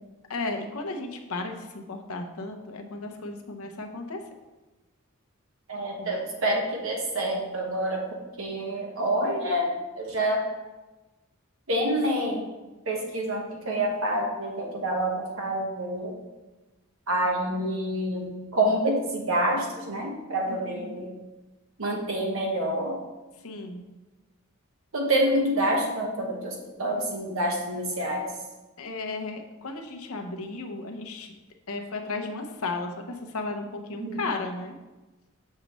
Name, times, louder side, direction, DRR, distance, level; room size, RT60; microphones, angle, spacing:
voice 1, 0.3-4.2 5.9-6.3 20.5-21.1 23.4-23.8 28.8-31.3 31.7-34.7, left 3 dB, 80° left, 4 dB, 0.8 m, -34 dB
voice 2, 5.7-10.5 11.7-12.5 12.9-16.2 17.1-21.1 21.8-23.0 24.9-28.3 34.0-34.2, right 1 dB, 70° right, 0 dB, 1.2 m, -27 dB
6.6 x 6.5 x 3.1 m, 1.1 s
head